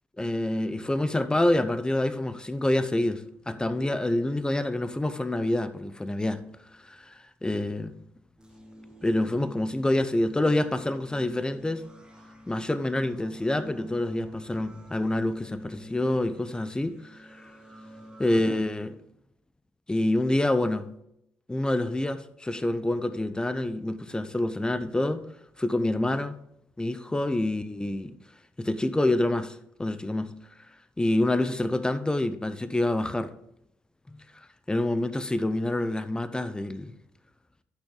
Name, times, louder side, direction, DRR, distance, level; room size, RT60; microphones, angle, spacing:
voice 1, 0.2-6.4 6.8-7.1 7.4-8.0 9.0-11.8 12.5-17.5 18.2-19.0 19.9-20.9 21.5-25.2 25.6-26.4 26.8-28.1 28.6-30.3 31.0-33.3 34.1-34.2 34.7-36.9, left 1 dB, 15° left, 0.8 m, -27 dB
sound 1, 8.4-18.4, equal, 15° right, 1.9 m, -47 dB
11.5 x 6.2 x 3.8 m
hypercardioid pair, 45°, 6 cm